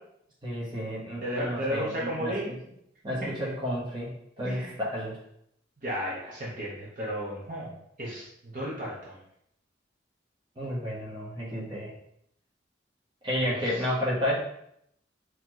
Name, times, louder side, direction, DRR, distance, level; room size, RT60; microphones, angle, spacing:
voice 1, 0.4-2.6 3.0-4.1 4.4-5.2 10.6-11.9 13.2-14.4, equal, 25° right, -6 dB, 1.2 m, -31 dB
voice 2, 1.2-2.5 4.4-4.8 5.8-7.7 8.0-9.2, equal, 45° right, -6 dB, 1.0 m, -33 dB
4.2 x 3.0 x 3.0 m, 0.74 s
head